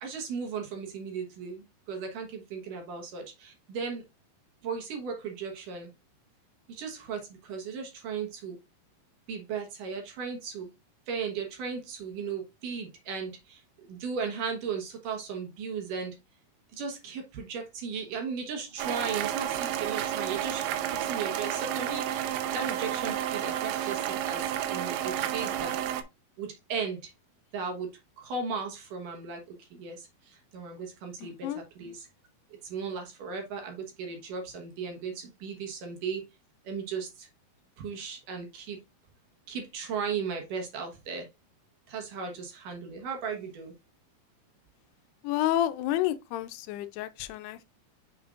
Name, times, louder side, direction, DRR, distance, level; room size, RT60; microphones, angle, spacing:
voice 1, 0.0-4.0 4.6-5.9 6.7-8.6 9.3-10.7 11.1-16.2 16.7-20.7 21.0-25.8 26.4-27.1 27.5-32.1 32.6-36.2 36.6-37.3 37.8-38.8 39.5-41.3 41.9-43.7, right 5 dB, 65° right, 2.5 m, -36 dB
sound 1, 18.8-26.0, right 11 dB, 90° right, 2.7 m, -31 dB
voice 2, 31.2-31.6 45.2-47.6, left 13 dB, 85° left, 2.6 m, -30 dB
7.3 x 6.2 x 2.4 m
omnidirectional pair, 4.6 m